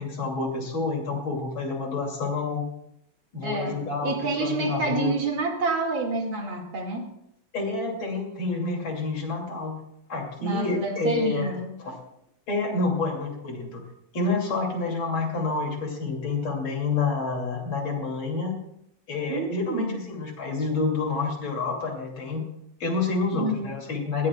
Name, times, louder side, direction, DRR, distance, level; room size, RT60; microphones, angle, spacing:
voice 1, 0.0-2.6 3.3-5.1 7.5-9.8 10.1-11.5 11.8-12.0 12.5-13.8 14.1-18.6 19.1-22.5 22.8-24.3, left 3 dB, 80° left, 1 dB, 3.6 m, -28 dB
voice 2, 3.4-7.1 10.4-11.7 19.3-20.0 23.3-23.7, right 3 dB, 85° right, 2 dB, 3.0 m, -28 dB
20.0 x 16.5 x 2.4 m, 0.76 s
omnidirectional pair, 2.2 m